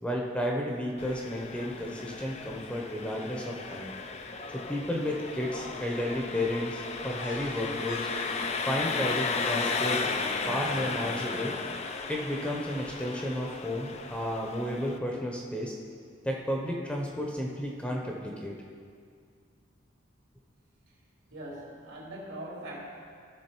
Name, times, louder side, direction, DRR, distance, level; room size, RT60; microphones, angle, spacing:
voice 1, 0.0-3.9 4.5-8.0 8.7-10.0 10.4-11.5 12.1-15.7 16.2-18.5, left 1 dB, 5° left, -1 dB, 0.9 m, -32 dB
Engine, 1.0-15.0, left 4 dB, 30° left, 0.5 m, -35 dB
sound 1, 7.2-11.5, left 1 dB, 75° left, 1.6 m, -46 dB
voice 2, 21.3-22.9, right 1 dB, 75° right, -3 dB, 2.9 m, -41 dB
15.5 x 6.2 x 4.5 m, 2.1 s
head